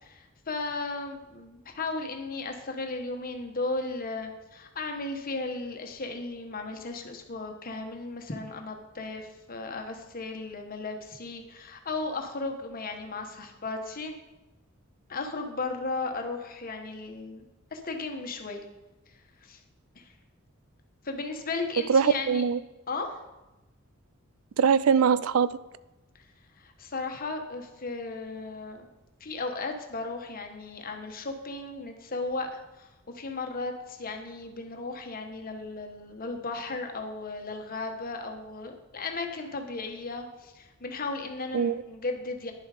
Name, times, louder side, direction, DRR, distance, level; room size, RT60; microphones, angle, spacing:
voice 1, 0.0-14.1 15.1-17.4 17.7-18.6 19.4-19.6 19.9-20.1 21.0-22.4 22.9-23.2 26.1-26.3 26.6-28.9 29.2-32.9 33.1-42.5, left 3 dB, 45° left, 4 dB, 1.2 m, -35 dB
voice 2, 21.9-22.6 24.6-25.6 41.5-41.8, right 6 dB, 85° right, 17 dB, 0.4 m, -22 dB
10.5 x 7.2 x 4.9 m, 1.0 s
head